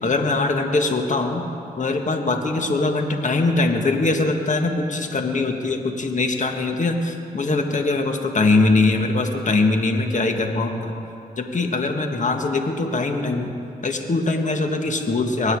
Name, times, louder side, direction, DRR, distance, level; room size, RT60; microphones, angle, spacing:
voice 1, 0.0-1.4 1.8-10.9 11.4-13.5 13.8-15.6, left 3 dB, 50° left, 4 dB, 1.9 m, -22 dB
24.0 x 9.6 x 4.9 m, 2.8 s
supercardioid pair, 45°, 17 cm